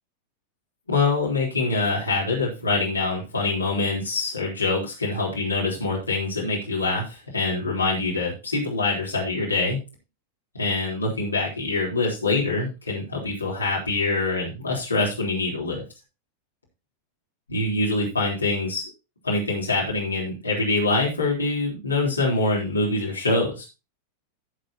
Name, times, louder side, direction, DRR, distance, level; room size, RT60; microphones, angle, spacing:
voice 1, 0.9-9.8 10.5-15.8 17.5-18.9 19.2-23.7, left 3 dB, 80° left, -4 dB, 3.7 m, -25 dB
15.0 x 6.7 x 2.9 m, 0.28 s
figure-of-eight pair, 90°, 0 cm